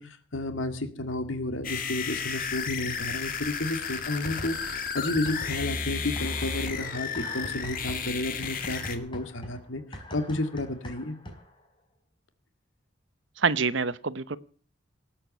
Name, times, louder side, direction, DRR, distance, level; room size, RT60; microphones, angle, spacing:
voice 1, 0.0-11.2, left 2 dB, 85° left, 8 dB, 2.1 m, -32 dB
sound 1, 1.6-9.0, left 6 dB, 45° left, 2.2 m, -33 dB
sound 2, 4.2-4.8 5.1-11.6, equal, 25° left, 3.6 m, -43 dB
voice 2, 13.4-14.4, right 5 dB, 70° right, 16 dB, 0.9 m, -26 dB
19.0 x 8.7 x 8.3 m, 0.43 s
head